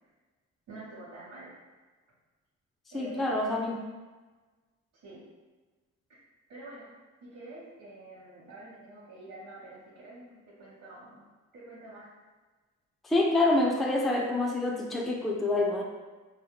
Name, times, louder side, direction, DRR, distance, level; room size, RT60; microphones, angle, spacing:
voice 1, 0.7-1.5 2.9-3.7 4.9-5.2 6.1-6.2 6.5-6.9 7.2-11.2 11.5-12.1, right 2 dB, 75° right, -9 dB, 1.0 m, -47 dB
voice 2, 2.9-3.9 13.0-15.8, left 2 dB, ahead, 0 dB, 0.3 m, -27 dB
4.2 x 2.8 x 2.2 m, 1.3 s
cardioid pair, 90°, 30 cm